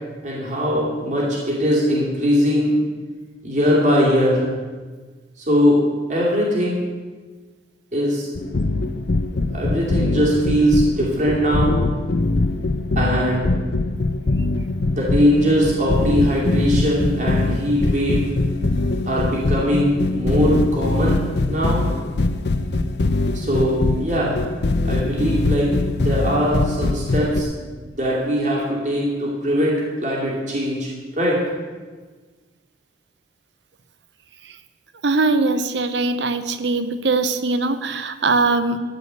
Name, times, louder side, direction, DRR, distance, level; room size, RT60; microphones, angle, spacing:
voice 1, 0.2-2.7 3.4-4.5 5.4-5.8 6.1-6.8 7.9-8.3 9.5-11.7 12.9-13.5 14.9-18.2 19.1-21.8 23.3-24.4 24.8-27.7 28.0-30.9 31.1-31.4, equal, 40° right, -5 dB, 2.8 m, -20 dB
sound 1, 8.3-27.4, left 2 dB, 65° left, 0.6 m, -22 dB
voice 2, 35.0-38.8, right 3 dB, 70° right, 11 dB, 0.8 m, -21 dB
14.0 x 5.2 x 8.1 m, 1.4 s
head